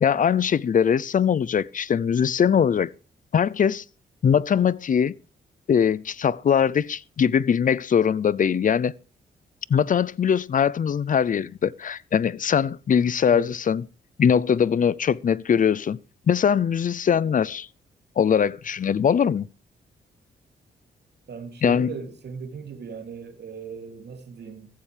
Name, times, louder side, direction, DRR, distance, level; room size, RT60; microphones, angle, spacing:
voice 1, 0.0-2.9 3.3-3.8 4.2-5.1 5.7-8.9 9.7-13.8 14.2-16.0 16.3-17.7 18.2-19.5 21.6-21.9, left 7 dB, 45° left, 0.5 m, -21 dB
voice 2, 21.3-24.7, right 5 dB, 65° right, 2.9 m, -37 dB
15.5 x 14.0 x 3.4 m
cardioid pair, 75°, 19 cm